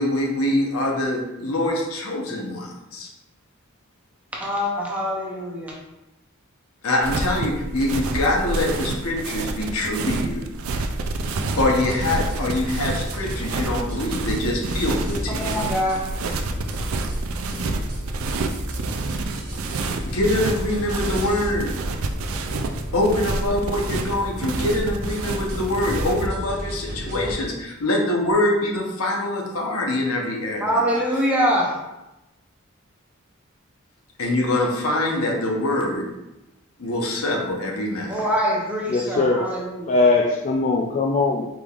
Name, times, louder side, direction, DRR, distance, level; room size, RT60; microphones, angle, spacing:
voice 1, 0.0-3.1 6.8-10.4 11.6-15.5 20.1-21.7 22.9-31.0 34.2-36.1 36.8-38.2, left 1 dB, 85° left, -1 dB, 0.9 m, -24 dB
voice 2, 4.4-5.8 15.3-16.1 30.6-31.8 38.1-40.0, equal, 5° right, -4 dB, 0.7 m, -24 dB
sound 1, 7.0-26.3, right 3 dB, 70° right, 0.4 m, -29 dB
sound 2, 11.2-27.3, equal, 45° right, 1.0 m, -33 dB
voice 3, 38.9-39.6 39.9-41.5, left 3 dB, 35° left, 0 dB, 0.3 m, -20 dB
4.9 x 3.4 x 2.4 m, 0.96 s
head